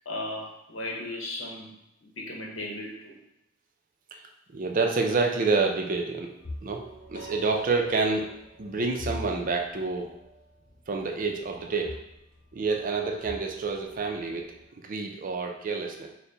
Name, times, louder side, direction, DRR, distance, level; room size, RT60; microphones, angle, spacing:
voice 1, 0.0-1.7 2.0-3.1, left 1 dB, 80° left, -1 dB, 0.9 m, -36 dB
voice 2, 4.5-6.3 6.6-6.8 7.1-8.2 8.6-10.1 10.9-12.0 12.5-16.1, right 4 dB, 45° right, 3 dB, 0.5 m, -28 dB
sound 1, 6.4-14.7, left 1 dB, 60° left, 1.1 m, -44 dB
4.4 x 2.1 x 3.8 m, 0.84 s
head